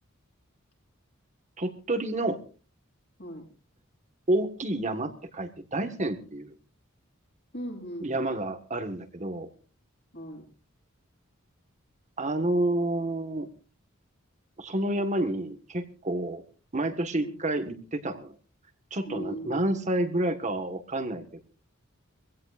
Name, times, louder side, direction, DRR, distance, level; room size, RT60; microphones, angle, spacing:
voice 1, 1.6-2.4 4.3-6.5 8.0-9.5 12.2-13.5 14.6-16.4 16.7-18.3 18.9-21.4, right 1 dB, 35° right, 7 dB, 1.6 m, -29 dB
voice 2, 7.5-8.3 10.1-10.5 17.2-17.3 19.0-20.0, equal, 55° left, 0 dB, 7.9 m, -39 dB
23.5 x 16.5 x 2.5 m, 0.36 s
head